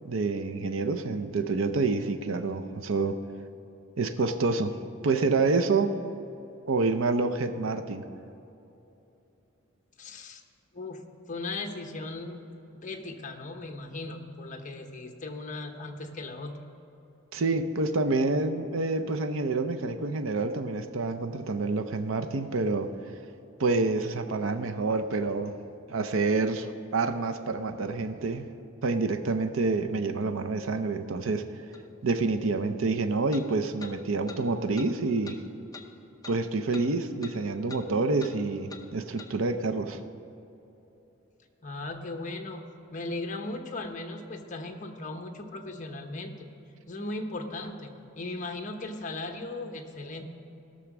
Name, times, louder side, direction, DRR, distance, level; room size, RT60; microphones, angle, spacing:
voice 1, 0.0-3.2 4.0-4.8 5.0-6.0 6.7-8.0 17.3-22.9 23.6-25.5 25.9-26.7 26.9-28.5 28.8-31.4 32.0-35.4 36.3-40.0, right 3 dB, 80° right, 8 dB, 0.6 m, -27 dB
voice 2, 10.0-10.4 10.7-11.0 11.3-12.4 12.7-16.6 41.6-46.5 46.9-50.2, left 2 dB, 40° left, 4 dB, 1.0 m, -37 dB
sound 1, 31.7-31.8 33.3-33.5 33.8-33.9 34.3-34.4 34.8-34.9 35.2-35.4 35.7-35.9 36.2-36.4 36.7-36.9 37.2-37.4 37.7-37.8 38.2-38.3 38.7-38.8 39.2-39.3, left 4 dB, 20° left, 0.6 m, -45 dB
16.5 x 6.4 x 6.0 m, 2.9 s
head